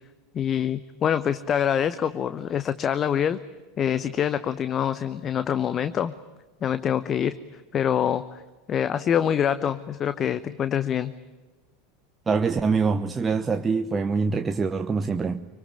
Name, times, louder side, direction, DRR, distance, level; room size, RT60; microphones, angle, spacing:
voice 1, 0.3-3.4 3.8-6.1 6.6-7.4 7.7-8.4 8.7-11.1, left 9 dB, 30° left, 0.9 m, -25 dB
voice 2, 12.3-15.5, right 4 dB, 20° right, 1.0 m, -24 dB
26.0 x 25.0 x 8.8 m
figure-of-eight pair, 80°, 0 cm